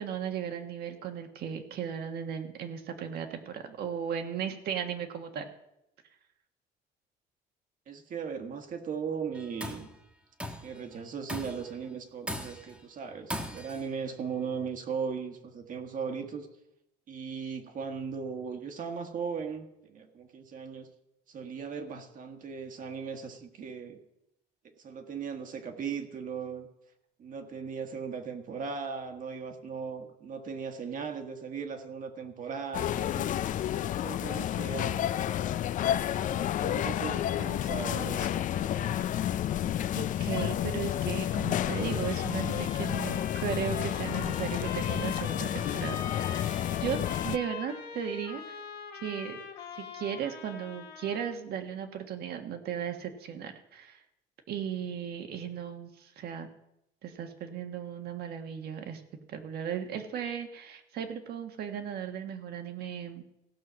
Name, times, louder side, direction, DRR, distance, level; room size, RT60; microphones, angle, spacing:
voice 1, 0.0-5.5 39.9-46.0 46.4-47.0 47.2-48.6 48.9-49.4 49.8-54.0 54.5-56.5 57.0-59.0 59.3-63.2, right 8 dB, 70° right, 6 dB, 1.4 m, -36 dB
voice 2, 7.9-9.9 10.6-16.5 17.1-20.9 21.3-24.0 24.8-26.7 27.2-33.3 34.0-35.2 36.1-39.0, right 6 dB, 50° right, 5 dB, 1.5 m, -38 dB
Tools, 9.4-9.9 10.4-10.8 11.3-11.7 12.3-12.8 13.3-13.9, equal, 5° right, 1.3 m, -38 dB
sound 1, 32.7-47.4, left 11 dB, 50° left, 0.4 m, -30 dB
Trumpet, 41.7-51.4, left 7 dB, 75° left, 1.8 m, -42 dB
16.5 x 5.9 x 6.1 m, 0.84 s
cardioid pair, 110°, 17 cm